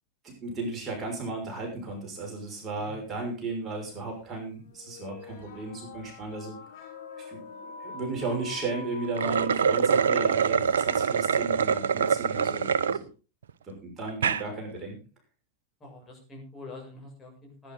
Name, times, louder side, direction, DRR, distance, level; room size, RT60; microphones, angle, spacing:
voice 1, 0.2-6.6 7.3-13.1 13.8-15.0, right 3 dB, 20° right, 0 dB, 6.1 m, -35 dB
sound 1, 3.0-3.1 3.9-4.0 4.6-11.0, left 4 dB, 55° left, 3.9 m, -45 dB
sound 2, 9.0-13.0 13.5-13.6 14.1-14.4, right 7 dB, 65° right, 0.7 m, -24 dB
voice 2, 15.8-17.7, left 2 dB, 15° left, -1 dB, 7.2 m, -45 dB
19.0 x 10.0 x 4.0 m, 0.34 s
figure-of-eight pair, 90°, 0 cm